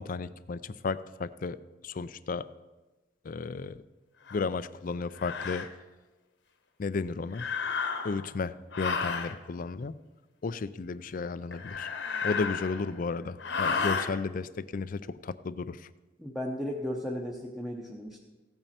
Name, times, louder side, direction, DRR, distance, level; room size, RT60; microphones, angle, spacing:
voice 1, 0.0-1.6 1.8-2.5 3.2-3.8 4.3-5.7 6.8-7.5 8.0-10.0 10.4-11.9 12.2-15.9, left 4 dB, 45° left, 15 dB, 0.4 m, -33 dB
sound 1, 4.3-4.4 5.2-5.7 7.3-8.3 8.7-9.3 11.5-13.0 13.4-14.1, left 5 dB, 65° left, 1.1 m, -32 dB
voice 2, 16.2-18.2, equal, ahead, -2 dB, 0.8 m, -35 dB
15.5 x 9.0 x 4.3 m, 1.2 s
head